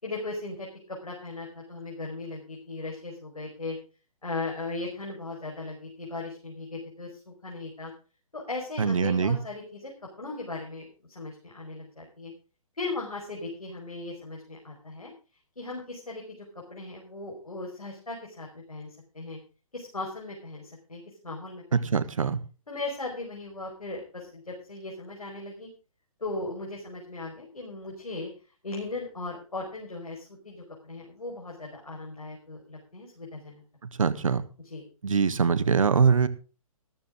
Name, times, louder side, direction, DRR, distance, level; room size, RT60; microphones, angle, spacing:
voice 1, 0.0-3.8 4.2-7.9 8.3-9.9 10.2-12.3 12.8-15.1 15.6-19.4 19.7-21.9 22.2-22.3 22.7-25.7 26.2-28.3 28.6-33.6 34.7-34.8, left 2 dB, 80° left, -1 dB, 4.9 m, -38 dB
voice 2, 8.8-9.4 21.7-22.4 33.8-34.4 35.0-36.3, right 5 dB, 65° right, 14 dB, 1.6 m, -23 dB
14.5 x 13.0 x 3.7 m, 0.36 s
figure-of-eight pair, 130°, 19 cm